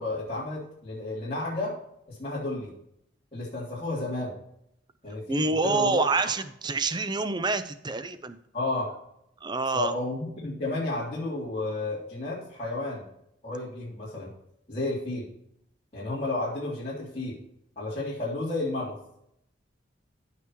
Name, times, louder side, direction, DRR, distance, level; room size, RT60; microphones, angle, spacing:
voice 1, 0.0-1.7 2.1-2.7 3.3-4.3 5.0-6.0 8.5-8.9 9.7-13.0 13.4-14.3 14.7-15.2 15.9-17.4 17.7-18.9, left 2 dB, 35° left, -8 dB, 3.2 m, -32 dB
voice 2, 5.3-8.4 9.4-10.0, right 3 dB, 25° right, 11 dB, 0.6 m, -27 dB
15.5 x 5.9 x 3.1 m, 0.75 s
head